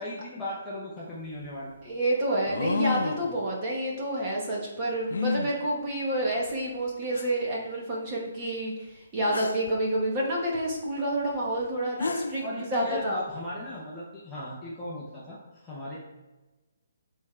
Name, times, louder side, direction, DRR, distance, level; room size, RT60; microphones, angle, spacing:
voice 1, 0.0-1.7 12.4-16.0, left 1 dB, 5° left, -8 dB, 0.7 m, -37 dB
sound 1, 1.0-1.1 2.5-3.3 5.1-5.5 6.5-6.6 7.1-7.2 9.3-9.7 11.6-11.7 12.0-12.5, left 4 dB, 75° left, 0.5 m, -30 dB
voice 2, 1.8-13.2, right 1 dB, 15° right, -3 dB, 1.0 m, -29 dB
6.9 x 3.6 x 4.3 m, 1.1 s
hypercardioid pair, 180°, 0 cm